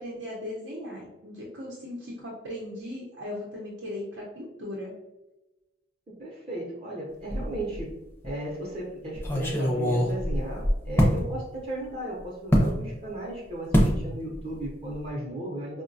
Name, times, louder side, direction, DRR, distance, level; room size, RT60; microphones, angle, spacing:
voice 1, 0.0-4.9, left 1 dB, 90° right, -3 dB, 0.7 m, -38 dB
voice 2, 6.2-8.0 8.2-15.8, right 1 dB, 35° right, -4 dB, 0.6 m, -35 dB
sound 1, 7.3-7.9 8.2-8.3 9.2-11.2 12.5-12.7 13.7-14.0 14.3-14.7 14.9-15.1, equal, 10° left, 0.5 m, -23 dB
4.7 x 2.1 x 2.6 m, 1.0 s
head